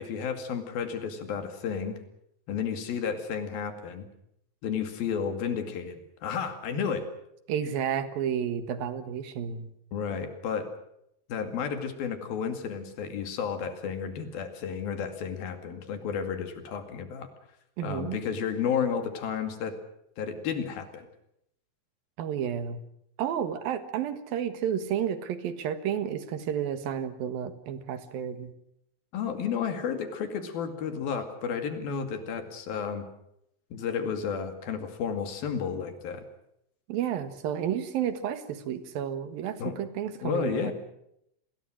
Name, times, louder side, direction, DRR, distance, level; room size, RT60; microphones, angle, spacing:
voice 1, 0.0-2.0 2.5-4.1 4.6-7.0 9.9-10.7 11.3-17.3 17.8-19.8 20.2-21.1 29.1-33.0 33.7-36.2 39.6-39.8 40.2-40.7, left 7 dB, 80° left, 8 dB, 4.2 m, -32 dB
voice 2, 7.5-9.7 17.8-18.2 22.2-22.8 23.2-28.5 36.9-40.7, right 9 dB, 75° right, 11 dB, 3.4 m, -31 dB
28.5 x 20.5 x 6.4 m, 0.77 s
omnidirectional pair, 4.2 m